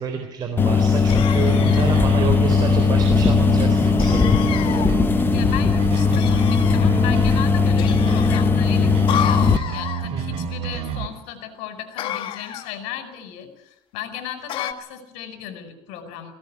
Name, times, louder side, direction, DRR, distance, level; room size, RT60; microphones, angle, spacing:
voice 1, 0.0-4.9 10.1-10.5, right 6 dB, 35° right, 5 dB, 4.0 m, -29 dB
sound 1, 0.6-9.6, left 5 dB, 15° left, 1.1 m, -18 dB
sound 2, 1.1-2.1 4.0-4.9 6.1-6.9 7.8-8.4 9.1-10.1 12.0-12.8 14.5-14.7, left 10 dB, 45° left, 1.7 m, -30 dB
sound 3, 1.5-11.1, right 9 dB, 55° right, 3.8 m, -29 dB
voice 2, 5.3-16.3, left 9 dB, 70° left, 9 dB, 5.2 m, -35 dB
21.5 x 17.5 x 9.8 m, 0.86 s
cardioid pair, 135°, 12 cm